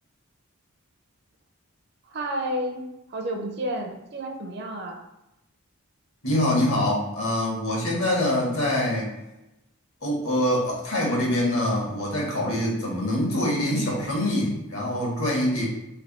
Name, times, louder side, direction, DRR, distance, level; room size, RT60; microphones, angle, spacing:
voice 1, 2.1-5.0, right 1 dB, 50° right, 4 dB, 0.5 m, -31 dB
voice 2, 6.2-9.1 10.0-15.7, left 1 dB, 70° left, -3 dB, 1.3 m, -24 dB
3.3 x 2.6 x 4.1 m, 0.93 s
head